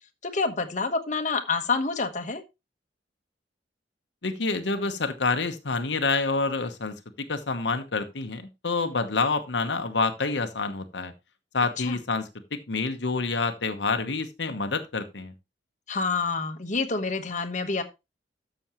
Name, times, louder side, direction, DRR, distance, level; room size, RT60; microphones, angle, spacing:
voice 1, 0.2-2.4 11.8-12.0 15.9-17.8, left 4 dB, 45° left, 6 dB, 1.3 m, -28 dB
voice 2, 4.2-11.1 11.5-15.3, left 3 dB, 85° left, 8 dB, 1.1 m, -28 dB
13.0 x 6.3 x 3.1 m, 0.24 s
head